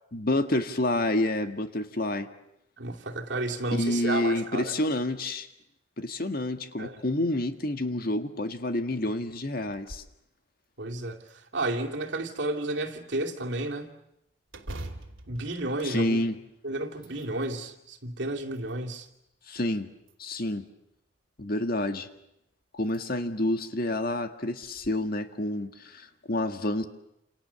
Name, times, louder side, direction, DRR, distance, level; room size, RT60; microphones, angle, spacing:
voice 1, 0.1-2.3 3.7-5.5 6.0-10.0 15.8-16.4 19.5-19.9 20.2-20.6 21.4-22.1 22.7-26.8, left 1 dB, 45° left, 1.8 m, -28 dB
voice 2, 2.8-4.7 6.8-7.0 10.8-13.9 15.3-16.3 16.6-19.1, right 2 dB, 65° right, 2.5 m, -32 dB
sound 1, 9.7-10.2 10.6-10.7 11.3-12.1 14.5-16.5 16.9-17.6 18.3-19.1 20.0-20.7 22.1-22.2 22.8-23.0 23.5-23.6 24.6-24.9, right 1 dB, 80° right, 2.7 m, -44 dB
29.0 x 28.0 x 7.0 m
head